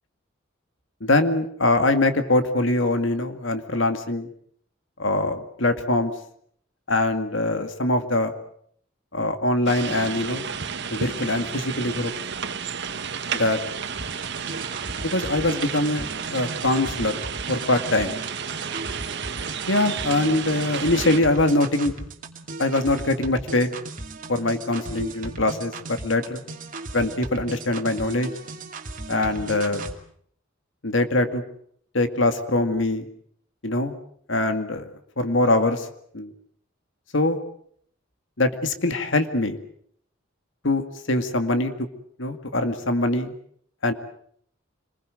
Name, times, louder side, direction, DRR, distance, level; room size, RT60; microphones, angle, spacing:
voice 1, 1.0-4.3 5.0-6.1 6.9-8.3 9.1-10.5 10.9-12.1 13.3-13.6 15.0-16.1 16.3-17.2 17.5-18.2 19.7-21.9 22.6-23.7 24.3-26.4 26.9-28.3 29.1-29.8 30.8-31.4 31.9-33.1 33.6-33.9 34.3-34.9 35.2-35.9 36.1-36.3 37.1-37.4 38.4-39.6 40.6-41.9 42.2-43.3 43.8-43.9, left 2 dB, 65° left, 8 dB, 2.1 m, -23 dB
sound 1, 9.7-21.2, right 6 dB, 60° right, 1.7 m, -32 dB
sound 2, 14.0-30.0, right 2 dB, 45° right, 2.6 m, -37 dB
26.5 x 21.0 x 7.7 m, 0.64 s
head